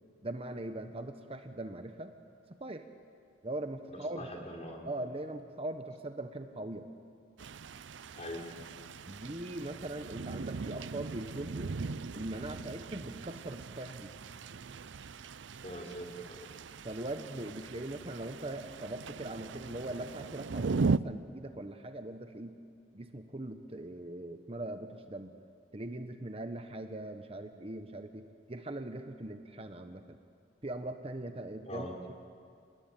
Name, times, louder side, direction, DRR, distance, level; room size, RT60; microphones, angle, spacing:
voice 1, 0.2-2.1 2.6-2.9 3.4-4.3 4.8-6.9 9.1-11.8 12.1-14.1 16.8-22.6 22.9-25.3 25.7-30.2 30.6-32.1, right 1 dB, 30° right, 7 dB, 1.1 m, -41 dB
voice 2, 4.1-4.8 8.1-8.4 15.6-16.5 31.6-31.9, equal, 35° left, 0 dB, 4.1 m, -42 dB
sound 1, 7.4-21.0, right 4 dB, 80° right, 0.6 m, -38 dB
28.5 x 19.5 x 9.1 m, 2.2 s
head